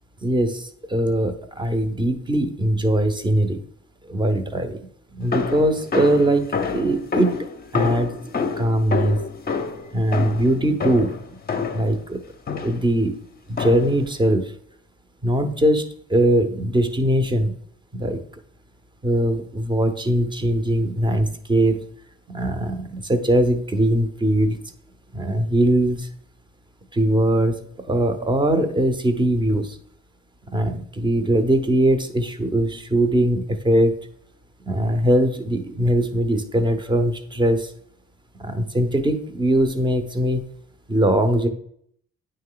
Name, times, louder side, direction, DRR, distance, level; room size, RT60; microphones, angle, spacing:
voice 1, 0.2-3.6 4.1-4.8 5.1-7.3 7.7-8.1 8.6-9.2 9.9-11.2 11.7-12.2 12.6-13.2 13.5-14.5 15.2-15.8 16.1-17.5 17.9-18.2 19.0-21.8 22.3-24.6 25.1-26.1 26.9-29.8 30.5-34.0 34.7-37.7 38.4-40.4 40.9-41.5, right 1 dB, 15° right, 8 dB, 0.8 m, -21 dB
sound 1, 5.3-12.0 12.5-12.9 13.6-14.1, left 5 dB, 30° left, 0.7 m, -27 dB
8.9 x 3.3 x 3.8 m, 0.66 s
cardioid pair, 90°, 30 cm